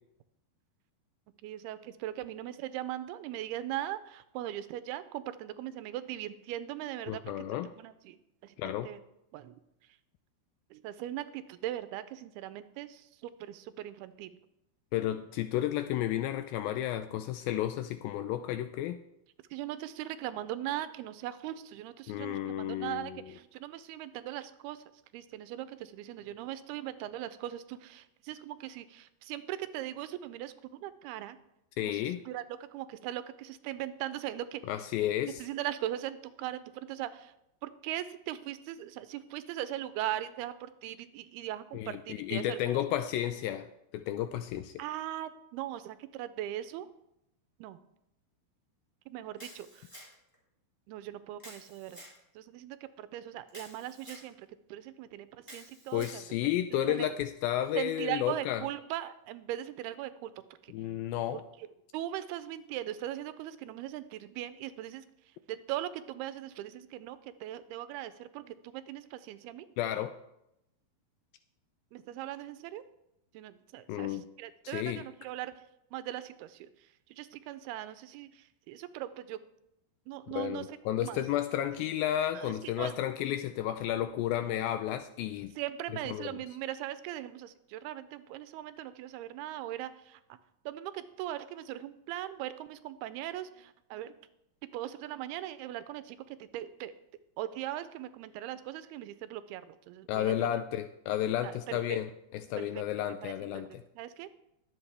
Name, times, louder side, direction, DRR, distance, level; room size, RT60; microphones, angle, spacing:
voice 1, 1.4-7.4 7.8-8.2 8.4-9.0 9.3-9.5 10.7-14.3 19.5-24.8 25.1-31.4 31.8-34.6 35.4-37.3 37.6-42.6 44.8-46.9 47.6-47.8 49.1-49.8 50.9-52.0 52.4-56.2 56.9-57.1 57.7-60.3 61.3-61.4 61.9-65.0 65.5-69.7 71.9-72.8 73.3-75.6 75.9-76.7 77.1-79.4 80.1-81.2 82.3-83.0 85.6-90.2 90.7-94.2 94.7-96.9 97.4-100.5 101.4-102.0 102.6-102.8 103.2-103.6 104.0-104.3, right 13 dB, 85° right, 13 dB, 2.5 m, -39 dB
voice 2, 7.1-7.7 8.6-8.9 14.9-19.0 22.1-23.3 31.8-32.2 34.7-35.4 41.7-43.7 43.9-44.7 55.9-58.6 60.7-61.4 69.8-70.1 73.9-74.3 74.6-75.0 80.3-85.5 86.1-86.3 100.1-103.8, left 12 dB, 85° left, 10 dB, 2.1 m, -32 dB
Camera, 49.4-50.3 51.4-52.2 53.5-54.3 55.4-56.2, equal, 5° left, 3.5 m, -50 dB
21.5 x 7.8 x 3.4 m, 0.83 s
omnidirectional pair, 4.6 m